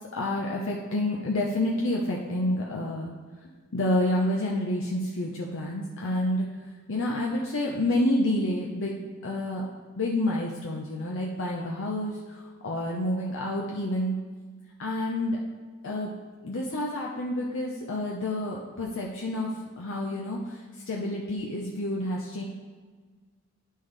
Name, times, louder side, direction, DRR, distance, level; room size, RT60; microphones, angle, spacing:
voice 1, 0.1-3.2 3.4-9.0 9.2-9.6 9.9-14.2 14.8-15.4 15.8-16.1 16.4-22.4, left 1 dB, 65° left, -2 dB, 0.7 m, -29 dB
9.9 x 5.5 x 3.3 m, 1.4 s
head